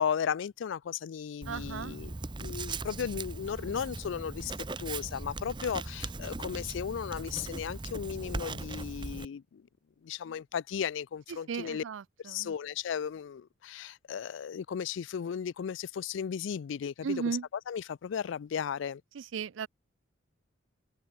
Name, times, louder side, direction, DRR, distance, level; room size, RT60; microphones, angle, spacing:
voice 1, 0.0-2.1 2.4-4.5 4.8-9.6 10.0-11.8 12.2-17.4 17.7-19.0, left 7 dB, 75° left, 0.3 m, -35 dB
Writing, 1.4-9.3, right 3 dB, 25° right, 0.8 m, -39 dB
voice 2, 1.5-2.0 10.3-10.4 11.5-12.6 17.0-17.5 19.1-19.7, right 6 dB, 80° right, 0.4 m, -36 dB
open air
head